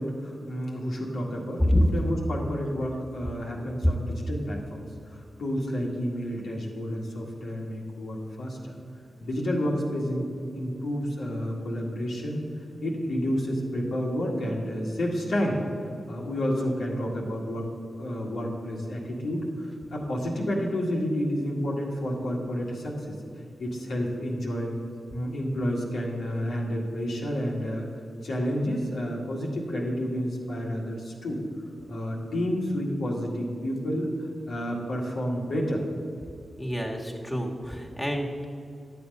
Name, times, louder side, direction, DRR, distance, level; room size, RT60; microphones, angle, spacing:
voice 1, 0.0-8.7 9.2-10.3 10.6-12.4 12.8-15.6 16.1-17.7 18.0-19.7 19.9-23.2 23.6-24.7 25.1-27.8 28.2-31.4 31.9-35.8, equal, 85° left, -3 dB, 1.8 m, -30 dB
voice 2, 36.6-38.4, equal, 5° left, -1 dB, 1.7 m, -26 dB
10.5 x 7.1 x 5.4 m, 2.5 s
cardioid pair, 45°, 0 cm